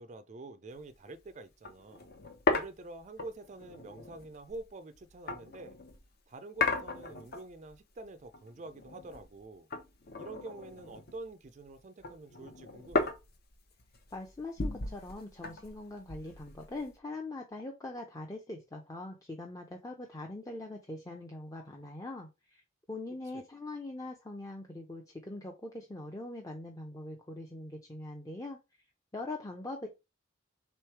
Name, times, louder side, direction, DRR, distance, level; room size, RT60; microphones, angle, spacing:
voice 1, 0.0-2.1 2.5-5.8 6.3-9.7 10.2-13.1 23.3-23.4, right 2 dB, 35° right, 0.4 m, -47 dB
sound 1, 0.8-1.0 1.3-1.4 1.6-6.0 6.6-7.7 8.1-9.4 9.7-11.4 11.8-17.0, left 3 dB, 50° left, 0.8 m, -36 dB
voice 2, 14.1-22.6 22.9-28.6 29.1-29.9, left 2 dB, 15° left, 0.6 m, -42 dB
3.5 x 3.2 x 4.5 m
head